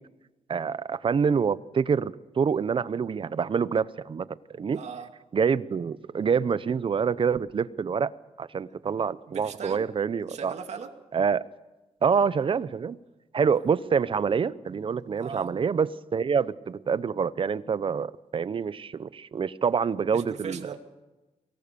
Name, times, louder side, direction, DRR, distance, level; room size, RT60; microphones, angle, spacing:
voice 1, 0.5-4.8 5.3-8.1 8.4-10.5 11.1-11.4 12.0-13.0 13.3-20.6, right 6 dB, 45° right, 17 dB, 0.8 m, -26 dB
voice 2, 4.7-5.1 9.3-9.8 10.3-10.9 15.2-15.5 20.1-20.8, right 6 dB, 65° right, 4 dB, 2.5 m, -38 dB
23.5 x 19.0 x 6.9 m, 1.1 s
cardioid pair, 95°, 12 cm